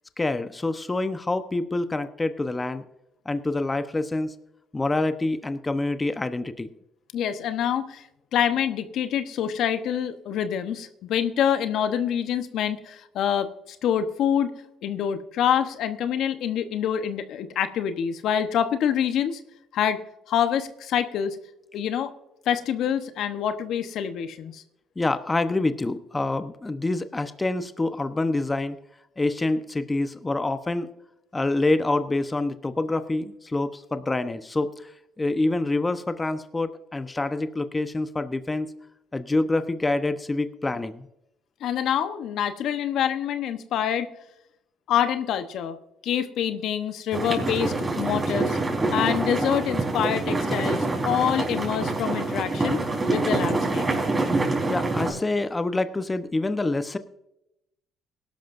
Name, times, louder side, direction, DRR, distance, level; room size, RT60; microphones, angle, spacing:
voice 1, 0.2-2.8 3.2-4.4 4.7-6.7 25.0-28.8 29.2-30.9 31.3-34.9 35.2-38.7 39.1-41.1 54.7-57.0, left 2 dB, 20° left, 10 dB, 0.9 m, -26 dB
voice 2, 7.1-8.0 8.3-14.5 14.8-19.4 19.7-20.0 20.3-21.4 21.7-22.1 22.5-24.6 41.6-44.1 44.9-45.8 46.0-48.6 48.9-53.9, left 9 dB, 70° left, 9 dB, 1.0 m, -26 dB
sound 1, 47.1-55.1, right 2 dB, 25° right, 4.4 m, -26 dB
18.5 x 11.5 x 2.6 m, 0.83 s
supercardioid pair, 60°, 0 cm